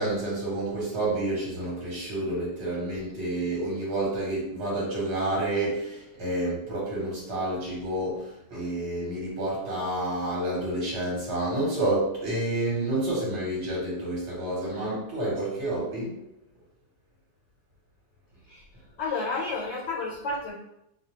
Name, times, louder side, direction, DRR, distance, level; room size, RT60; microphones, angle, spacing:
voice 1, 0.0-16.2, right 1 dB, 75° right, -5 dB, 1.2 m, -29 dB
voice 2, 19.0-20.5, left 3 dB, 90° left, -5 dB, 1.0 m, -31 dB
2.3 x 2.3 x 2.8 m, 0.81 s
omnidirectional pair, 1.2 m